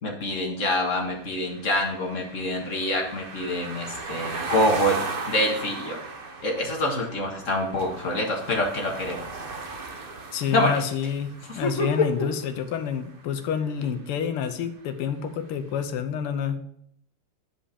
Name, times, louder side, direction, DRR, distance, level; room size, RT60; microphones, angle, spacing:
voice 1, 0.0-5.0 5.3-6.0 6.4-9.2 10.5-10.7 11.5-11.9, left 1 dB, 40° left, 0 dB, 1.8 m, -26 dB
sound 1, 1.0-13.0, right 4 dB, 60° right, 0.5 m, -37 dB
voice 2, 10.3-16.6, left 7 dB, 90° left, 9 dB, 1.8 m, -28 dB
9.9 x 5.2 x 5.0 m, 0.72 s
omnidirectional pair, 2.4 m